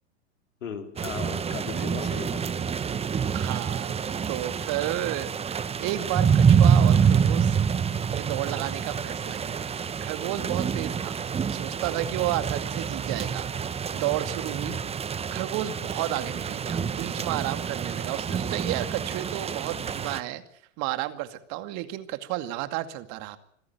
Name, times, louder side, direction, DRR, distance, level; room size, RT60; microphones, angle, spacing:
voice 1, 0.6-2.8 14.7-14.8, left 7 dB, 80° left, 5 dB, 4.3 m, -37 dB
sound 1, 1.0-20.2, right 7 dB, 15° right, 1.0 m, -26 dB
voice 2, 3.3-3.9 4.3-7.6 8.1-9.6 10.0-11.2 11.5-14.8 15.3-20.4 20.8-23.4, right 14 dB, 50° right, 10 dB, 2.3 m, -32 dB
26.0 x 15.0 x 9.3 m, 0.69 s
hypercardioid pair, 100°, 37 cm